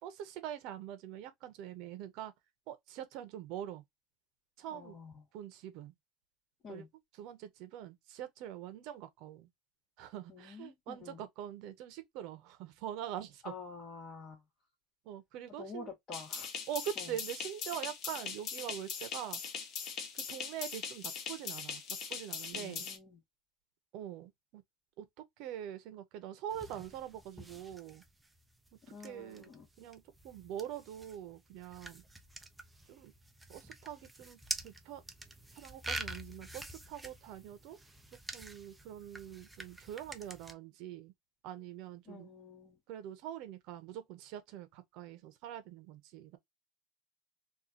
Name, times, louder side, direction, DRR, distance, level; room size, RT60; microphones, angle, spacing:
voice 1, 0.0-2.3 2.7-3.8 4.6-5.0 5.3-5.9 6.7-6.9 7.1-9.5 10.0-13.5 15.0-15.9 16.7-19.4 20.1-21.8 22.1-22.9 23.9-24.6 25.0-28.0 29.0-29.5 29.8-32.0 32.9-33.1 33.5-35.0 35.5-37.8 38.3-41.1 41.4-42.3 42.9-46.4, right 10 dB, 65° right, 0.9 m, -44 dB
voice 2, 4.7-5.1 6.6-6.9 10.3-11.2 13.4-14.4 15.6-16.5 17.0-17.1 22.5-23.2 28.9-29.6 42.1-42.8, left 4 dB, 35° left, 2.1 m, -48 dB
sound 1, 16.1-23.0, left 6 dB, 50° left, 1.1 m, -41 dB
sound 2, 26.5-40.5, right 2 dB, 10° right, 0.6 m, -47 dB
3.8 x 2.7 x 2.8 m
supercardioid pair, 135°, 0 cm